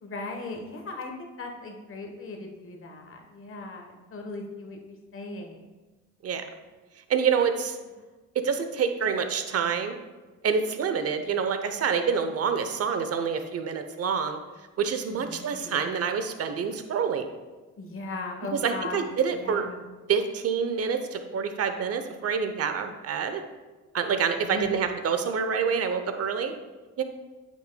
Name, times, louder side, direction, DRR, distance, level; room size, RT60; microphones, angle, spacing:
voice 1, 0.0-5.6 15.1-15.8 17.8-19.0 19.3-19.8 24.3-24.8, left 2 dB, 45° left, 3 dB, 1.2 m, -38 dB
voice 2, 7.1-7.8 8.3-10.0 10.4-14.4 14.8-17.3 18.5-19.6 20.1-23.4 23.9-26.5 27.0-27.1, right 6 dB, 55° right, 8 dB, 0.7 m, -27 dB
8.5 x 6.2 x 2.2 m, 1.2 s
cardioid pair, 90°, 30 cm